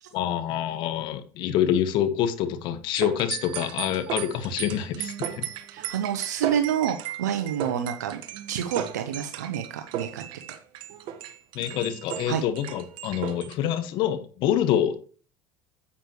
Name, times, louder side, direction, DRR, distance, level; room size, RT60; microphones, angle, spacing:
voice 1, 0.1-5.5 11.5-15.0, left 10 dB, 60° left, 1.5 m, -26 dB
sound 1, 3.0-13.5, right 10 dB, 60° right, 1.3 m, -35 dB
voice 2, 5.7-8.2 8.5-10.2 12.3-12.4, right 9 dB, 85° right, 0.9 m, -28 dB
9.9 x 8.4 x 3.1 m
hypercardioid pair, 80°, 9 cm